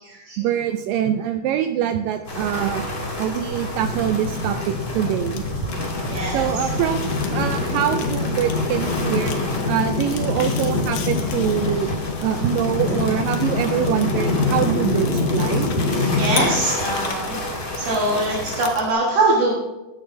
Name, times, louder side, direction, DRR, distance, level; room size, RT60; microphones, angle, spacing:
voice 1, 0.4-2.9 3.2-5.4 6.3-9.3 9.7-15.7, right 10 dB, 85° right, 8 dB, 1.9 m, -24 dB
sound 1, 2.2-18.7, left 1 dB, 25° left, 1.8 m, -31 dB
Fire, 3.8-18.9, left 3 dB, 70° left, 1.8 m, -25 dB
voice 2, 6.1-6.5 16.2-17.3 17.7-19.5, right 2 dB, 70° right, -4 dB, 3.1 m, -22 dB
14.5 x 9.9 x 2.6 m, 1.1 s
omnidirectional pair, 4.4 m